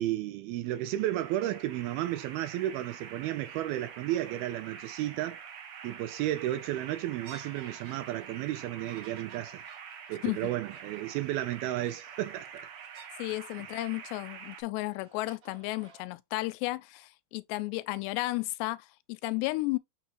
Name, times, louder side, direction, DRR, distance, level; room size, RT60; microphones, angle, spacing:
voice 1, 0.0-5.4 5.8-9.6 10.1-12.5, right 14 dB, 80° right, 2.3 m, -33 dB
sound 1, 0.6-14.6, right 7 dB, 60° right, 1.8 m, -46 dB
sound 2, 7.2-13.9 14.4-16.0, right 6 dB, 40° right, 4.1 m, -56 dB
voice 2, 13.2-19.8, left 20 dB, 90° left, 2.8 m, -33 dB
7.2 x 5.4 x 2.9 m
omnidirectional pair, 4.8 m